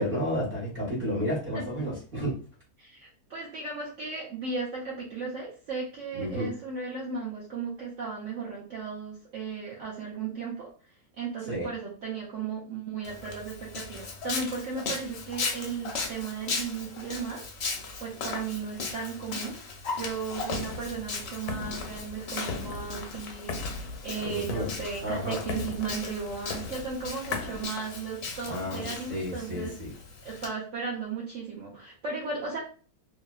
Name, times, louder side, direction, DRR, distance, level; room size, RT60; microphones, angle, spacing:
voice 1, 0.0-2.3 6.1-6.5 11.5-11.7 24.2-24.6 25.0-25.4 28.5-28.8 29.1-29.9, equal, 45° right, -5 dB, 1.3 m, -31 dB
voice 2, 2.8-10.7 11.2-17.4 18.0-19.5 20.0-29.7 30.2-32.6, right 5 dB, 65° right, -4 dB, 0.9 m, -35 dB
Walk footsteps, 13.0-30.5, left 4 dB, 60° left, 0.8 m, -38 dB
sound 1, 20.3-27.7, left 5 dB, 90° left, 1.1 m, -38 dB
2.7 x 2.4 x 2.3 m, 0.39 s
omnidirectional pair, 1.6 m